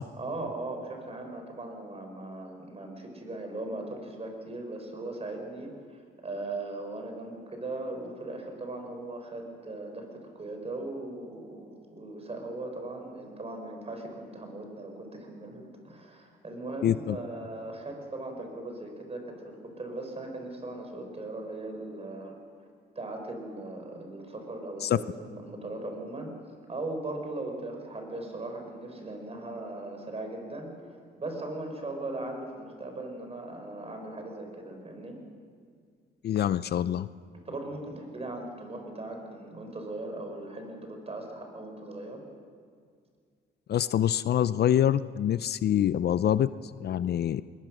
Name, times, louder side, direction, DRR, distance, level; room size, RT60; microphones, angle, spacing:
voice 1, 0.1-22.3 23.0-26.3 26.7-30.7 31.2-35.2 37.5-42.2, right 2 dB, 30° right, 3 dB, 5.2 m, -38 dB
voice 2, 16.8-17.2 24.8-25.0 36.2-37.1 43.7-46.5 46.8-47.4, left 10 dB, 55° left, 16 dB, 0.5 m, -25 dB
21.0 x 20.5 x 6.4 m, 2.1 s
cardioid pair, 90°, 20 cm